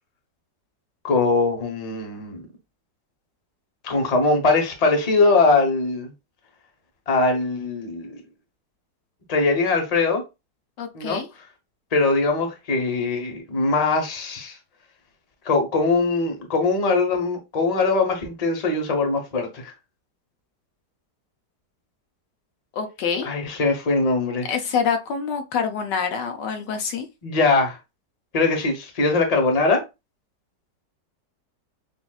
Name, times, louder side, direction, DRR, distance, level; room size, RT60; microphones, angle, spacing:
voice 1, 1.0-2.4 3.8-6.1 7.1-8.2 9.3-10.2 10.9-11.2 11.9-14.6 15.4-19.7 23.2-24.5 27.2-27.8 28.3-29.8, left 3 dB, 25° left, 0.9 m, -21 dB
voice 2, 10.8-11.3 22.7-23.3 24.5-27.1, left 6 dB, 80° left, 1.4 m, -26 dB
6.9 x 2.6 x 2.3 m
omnidirectional pair, 1.9 m